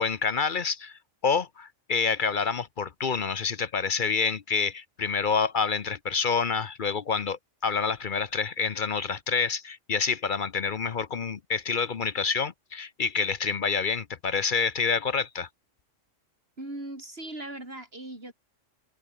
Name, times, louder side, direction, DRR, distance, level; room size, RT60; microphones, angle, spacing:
voice 1, 0.0-15.5, left 5 dB, 45° left, 0.8 m, -28 dB
voice 2, 16.6-18.3, right 1 dB, 50° right, 6.5 m, -39 dB
omnidirectional pair, 1.3 m